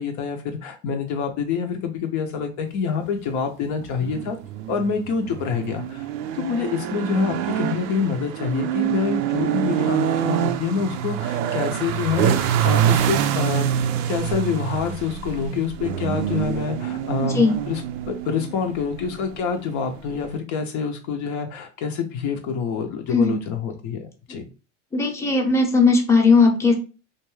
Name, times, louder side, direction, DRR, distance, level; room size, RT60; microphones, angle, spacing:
voice 1, 0.0-4.4 4.7-6.1 6.3-13.8 14.1-17.8 18.1-24.5, left 6 dB, 50° left, 4 dB, 0.6 m, -26 dB
sound 1, 3.7-20.4, right 10 dB, 70° right, 0.5 m, -26 dB
voice 2, 24.9-26.7, left 4 dB, 5° left, 1 dB, 0.7 m, -17 dB
2.5 x 2.3 x 3.1 m, 0.33 s
hypercardioid pair, 95°, 36 cm